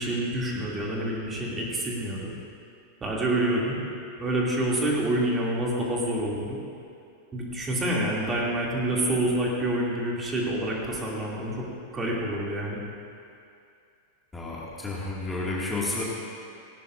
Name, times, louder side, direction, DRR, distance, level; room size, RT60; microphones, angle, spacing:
voice 1, 0.0-2.3 3.0-3.8 4.2-6.6 7.3-11.6 11.9-12.8, right 1 dB, 20° right, -3 dB, 2.5 m, -27 dB
voice 2, 14.3-16.0, left 2 dB, 10° left, -5 dB, 2.0 m, -31 dB
17.5 x 17.5 x 2.6 m, 2.5 s
figure-of-eight pair, 90°, 0 cm